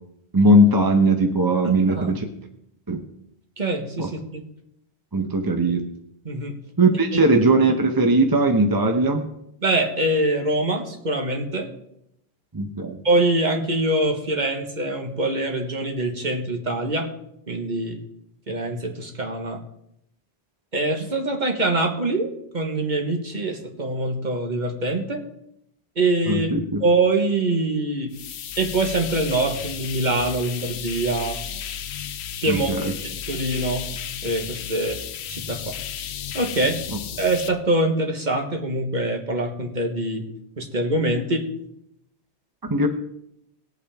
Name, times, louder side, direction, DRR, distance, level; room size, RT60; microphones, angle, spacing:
voice 1, 0.3-2.3 2.9-3.0 4.0-4.1 5.1-5.8 6.8-9.2 12.5-13.0 26.3-26.8 32.5-32.9 42.6-42.9, right 1 dB, 20° right, 5 dB, 0.8 m, -19 dB
voice 2, 1.8-2.2 3.6-4.4 6.2-6.6 7.1-7.2 9.6-11.7 13.0-17.1 17.5-18.0 18.5-19.6 20.7-25.2 25.9-26.5 26.8-28.2 28.6-31.4 32.4-32.7 33.3-33.9 34.2-35.0 35.3-35.8 36.3-36.8 37.2-40.3 40.6-41.5, right 2 dB, 45° right, 4 dB, 1.5 m, -24 dB
sound 1, 28.1-37.5, left 9 dB, 75° left, 0.9 m, -33 dB
18.5 x 8.3 x 3.5 m, 0.78 s
omnidirectional pair, 1.1 m